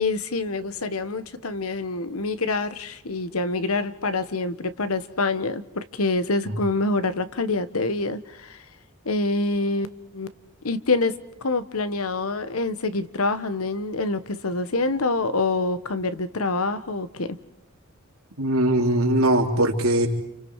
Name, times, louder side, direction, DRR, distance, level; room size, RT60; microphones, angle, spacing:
voice 1, 0.0-8.6 9.0-9.9 10.1-10.3 10.6-11.1 11.4-17.4, left 3 dB, 85° left, 13 dB, 1.2 m, -26 dB
voice 2, 18.4-20.1, right 1 dB, 80° right, 1 dB, 3.4 m, -21 dB
30.0 x 29.0 x 4.8 m, 0.83 s
head